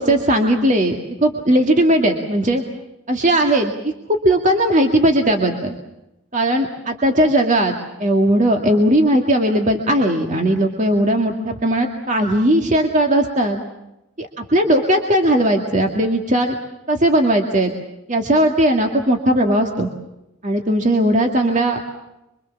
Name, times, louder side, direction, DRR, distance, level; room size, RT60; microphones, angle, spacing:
voice 1, 0.0-2.6 3.1-5.7 6.3-13.6 14.2-16.5 16.9-17.7 18.1-19.9 20.4-21.9, right 1 dB, 35° right, 3 dB, 2.1 m, -18 dB
26.5 x 24.0 x 7.2 m, 0.90 s
head